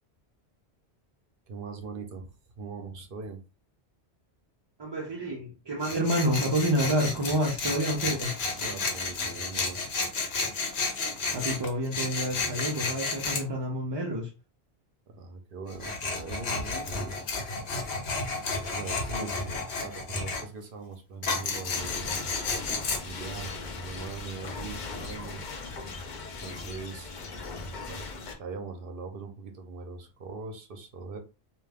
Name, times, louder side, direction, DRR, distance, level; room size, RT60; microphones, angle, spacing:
voice 1, 1.5-2.3 2.6-3.4 8.6-9.9 15.1-17.3 18.5-22.3 23.0-25.5 26.4-27.1 27.8-28.1 28.4-31.2, right 4 dB, 60° right, 0.8 m, -41 dB
voice 2, 4.8-8.3 11.3-14.3 19.2-19.3, equal, 45° right, 0.3 m, -28 dB
Tools, 5.8-13.4 15.7-20.4 21.2-23.0, left 3 dB, 70° left, 1.0 m, -32 dB
sound 1, 21.7-28.3, left 3 dB, 55° left, 0.6 m, -39 dB
2.4 x 2.3 x 3.3 m
omnidirectional pair, 1.1 m